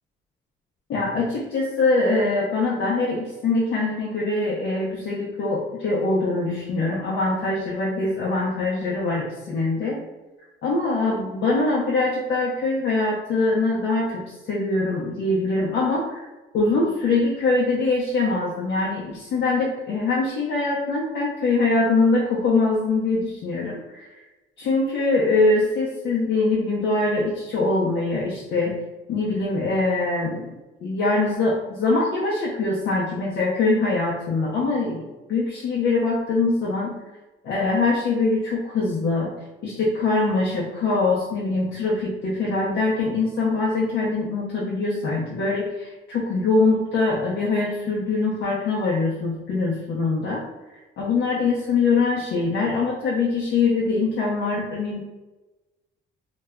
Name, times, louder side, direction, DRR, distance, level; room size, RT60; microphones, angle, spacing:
voice 1, 0.9-10.0 10.6-16.2 16.5-24.1 24.6-28.8 29.1-36.9 37.4-39.3 39.6-50.4 51.0-55.0, left 3 dB, 65° left, -5 dB, 0.6 m, -23 dB
2.2 x 2.0 x 3.4 m, 1.1 s
cardioid pair, 90°, 20 cm